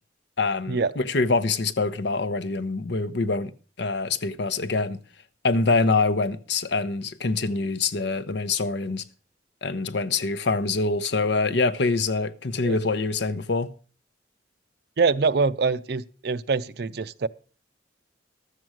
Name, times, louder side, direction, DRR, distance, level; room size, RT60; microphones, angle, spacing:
voice 1, 0.4-3.5 3.8-5.0 5.4-9.0 9.6-13.7, left 3 dB, 65° left, 0.7 m, -25 dB
voice 2, 15.0-17.3, right 4 dB, 60° right, 0.5 m, -24 dB
13.0 x 7.7 x 6.2 m
head